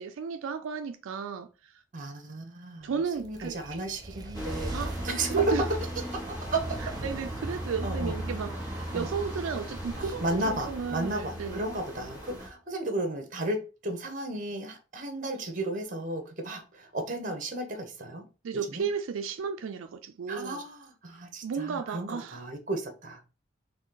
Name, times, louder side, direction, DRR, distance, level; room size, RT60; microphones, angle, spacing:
voice 1, 0.0-1.7 2.8-3.8 4.7-4.9 5.3-5.7 6.8-11.7 18.4-20.6 21.4-22.4, right 6 dB, 85° right, 0.4 m, -33 dB
voice 2, 1.9-2.9 3.2-4.7 5.0-5.5 6.3-6.8 7.8-8.1 8.9-9.1 10.0-18.3 18.7-18.9 20.3-23.2, right 2 dB, 40° right, 1.0 m, -34 dB
sound 1, 2.9-12.2, right 1 dB, 20° right, 0.4 m, -38 dB
sound 2, 4.3-12.5, equal, 20° left, 1.6 m, -41 dB
4.1 x 2.7 x 3.9 m
head